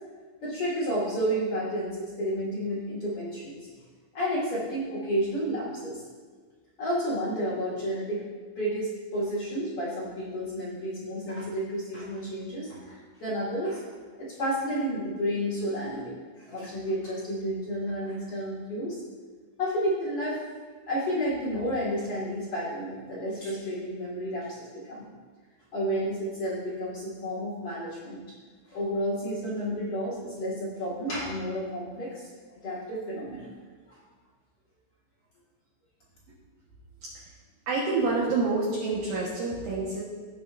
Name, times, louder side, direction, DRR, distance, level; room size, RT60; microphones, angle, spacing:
voice 1, 0.4-3.6 4.1-6.0 6.8-8.2 8.5-13.8 14.2-19.0 19.6-20.4 20.9-25.1 25.7-28.2 28.7-32.3 32.6-33.5 33.9-34.0, equal, 60° left, -8 dB, 1.4 m, -31 dB
voice 2, 37.7-40.0, right 3 dB, 70° right, -5 dB, 2.4 m, -27 dB
17.0 x 6.5 x 2.5 m, 1.5 s
omnidirectional pair, 5.6 m